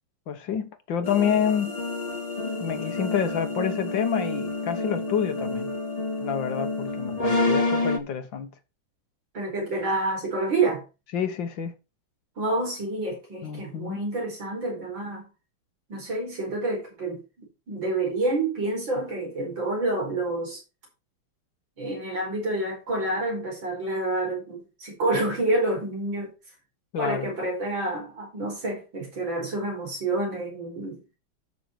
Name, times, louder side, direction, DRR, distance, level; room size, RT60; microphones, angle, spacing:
voice 1, 0.3-1.8 2.4-5.7 6.2-8.5 11.1-11.7 13.4-14.0 26.9-27.3, left 8 dB, 70° left, 1.8 m, -28 dB
sound 1, 1.0-8.0, left 2 dB, 20° left, 1.2 m, -29 dB
voice 2, 9.3-10.8 12.4-15.2 15.9-20.6 21.8-26.3 27.0-31.2, right 2 dB, 65° right, 5.4 m, -28 dB
11.5 x 6.0 x 4.5 m
omnidirectional pair, 2.2 m